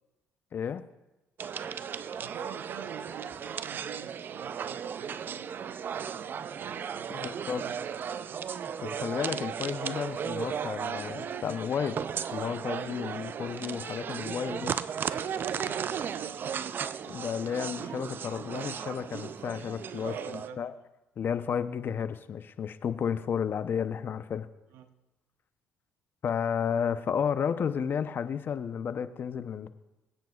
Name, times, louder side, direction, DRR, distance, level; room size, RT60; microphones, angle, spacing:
voice 1, 0.5-0.8 7.1-7.6 8.8-12.0 12.3-14.7 17.1-20.7 21.2-24.5 26.2-29.7, left 7 dB, 50° left, 12 dB, 0.7 m, -32 dB
sound 1, 1.4-20.5, right 7 dB, 50° right, 0.4 m, -35 dB
voice 2, 2.2-8.4 15.1-17.0 20.0-20.8 24.7-24.9, right 9 dB, 80° right, 9 dB, 0.9 m, -46 dB
22.0 x 9.2 x 2.4 m, 1.0 s
supercardioid pair, 75°, 5 cm